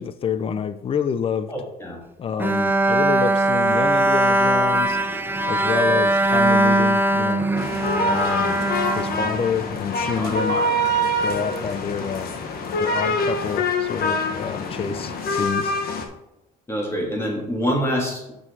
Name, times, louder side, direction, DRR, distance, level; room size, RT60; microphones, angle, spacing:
voice 1, 0.0-1.5 2.2-5.0 5.5-7.5 8.1-8.6 8.9-10.6 11.2-12.3 12.8-15.7, left 7 dB, 35° left, 12 dB, 0.6 m, -28 dB
voice 2, 1.5-2.0 10.2-10.7 16.7-18.3, equal, 15° left, -1 dB, 3.0 m, -26 dB
Bowed string instrument, 2.4-9.8, right 1 dB, 10° right, 0.7 m, -20 dB
sound 1, 7.6-16.1, left 1 dB, 65° left, 1.4 m, -25 dB
7.7 x 6.1 x 4.1 m, 0.92 s
cardioid pair, 110°, 17 cm